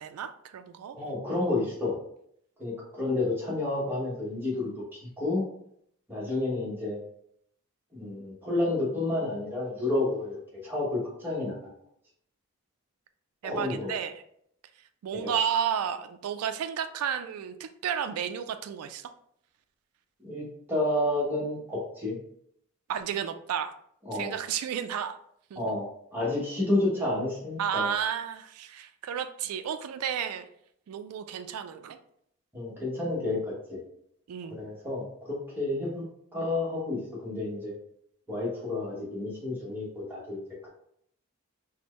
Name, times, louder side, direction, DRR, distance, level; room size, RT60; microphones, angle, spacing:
voice 1, 0.0-1.0 13.4-14.2 15.0-19.1 22.9-23.7 24.1-25.2 25.5-25.6 27.6-30.5 30.9-32.0 34.3-34.6, right 8 dB, 85° right, 9 dB, 0.3 m, -32 dB
voice 2, 0.9-2.0 2.6-5.4 6.1-7.0 7.9-11.6 13.4-13.9 15.2-15.3 20.2-22.2 24.1-24.3 25.6-25.9 26.1-27.9 32.5-33.8 34.6-36.0 36.3-37.7 38.3-40.7, left 2 dB, 10° right, -5 dB, 1.0 m, -30 dB
4.3 x 2.1 x 3.1 m, 0.70 s
head